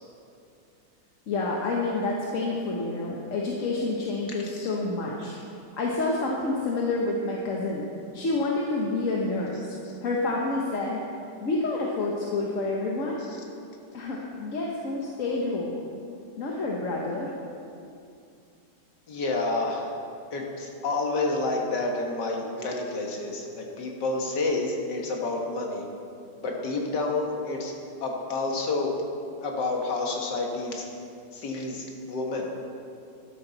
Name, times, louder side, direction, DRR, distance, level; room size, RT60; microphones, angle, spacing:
voice 1, 1.3-5.4 5.8-7.8 8.1-9.6 10.0-11.0 11.4-13.2 13.9-15.7 16.4-17.3, left 2 dB, 50° left, -2 dB, 1.3 m, -28 dB
voice 2, 4.3-4.7 19.1-19.9 20.3-25.9 26.4-27.7 28.0-28.9 29.4-30.9 31.3-32.5, left 3 dB, 75° left, 0 dB, 2.1 m, -29 dB
12.5 x 11.5 x 4.0 m, 2.5 s
omnidirectional pair, 1.9 m